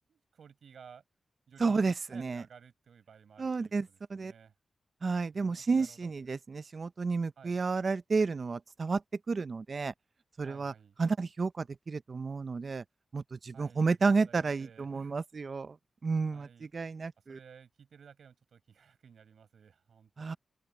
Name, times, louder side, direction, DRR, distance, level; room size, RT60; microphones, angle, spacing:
voice 1, 0.1-1.0 1.5-1.8 2.1-4.5 5.3-6.4 7.4-7.5 10.4-11.0 13.5-15.2 16.3-16.7 17.3-20.1, right 7 dB, 85° right, 6.8 m, -56 dB
voice 2, 1.6-2.4 3.4-4.3 5.0-9.0 9.3-9.9 10.4-10.7 11.0-12.8 13.1-15.8 16.0-17.4 20.2-20.4, right 4 dB, 50° right, 0.5 m, -31 dB
open air
wide cardioid pair, 90°, 0 cm